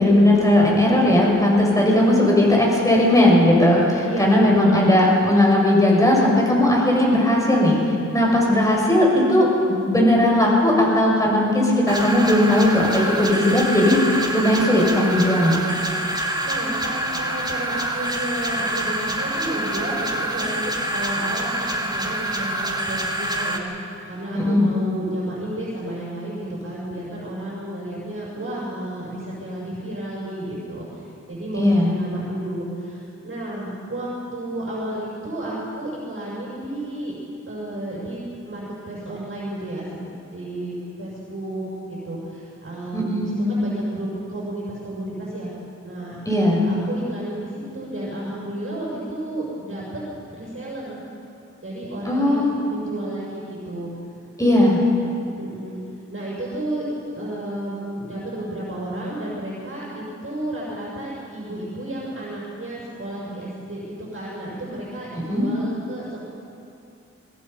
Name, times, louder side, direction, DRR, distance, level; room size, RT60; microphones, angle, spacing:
voice 1, 0.0-15.6 24.3-24.7 31.5-31.9 42.9-43.4 46.3-46.6 52.1-52.5 54.4-54.8 65.3-65.5, left 1 dB, 10° left, -3 dB, 6.9 m, -17 dB
voice 2, 4.0-4.9 16.4-37.1 37.5-38.2 38.5-39.9 40.3-45.5 45.8-46.2 46.7-49.8 50.4-51.0 51.6-53.9 55.3-55.8 56.1-56.8 57.1-63.9 64.1-66.2, right 1 dB, 45° right, -6 dB, 6.3 m, -32 dB
sound 1, 11.9-23.6, right 1 dB, 15° right, 2.4 m, -26 dB
22.5 x 21.5 x 5.7 m, 2.7 s
wide cardioid pair, 75°, 30 cm